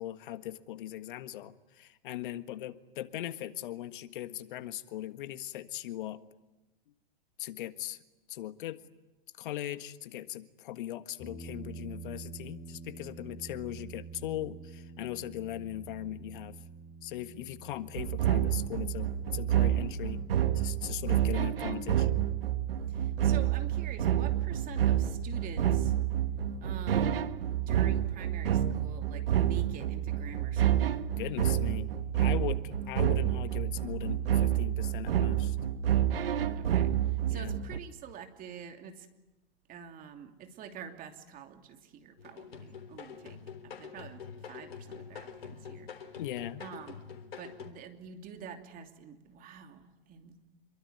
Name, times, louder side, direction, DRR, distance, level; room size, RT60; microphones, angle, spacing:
voice 1, 0.0-6.2 7.4-8.0 8.3-8.8 9.4-16.6 17.0-20.2 20.5-22.1 31.2-35.6 37.3-37.6 46.2-46.6, left 13 dB, 55° left, 11 dB, 1.6 m, -39 dB
sound 1, 11.2-24.3, right 4 dB, 30° left, 5.3 m, -49 dB
sound 2, 18.0-37.8, right 11 dB, 70° right, 1.7 m, -29 dB
voice 2, 22.9-25.9 26.6-31.0 36.5-39.1 39.7-45.9 46.6-47.1 47.4-50.3, right 7 dB, 30° right, 5 dB, 2.9 m, -47 dB
sound 3, 42.2-47.7, left 6 dB, 80° left, 3.5 m, -46 dB
27.0 x 23.0 x 9.5 m, 1.0 s
hypercardioid pair, 125°, 30 cm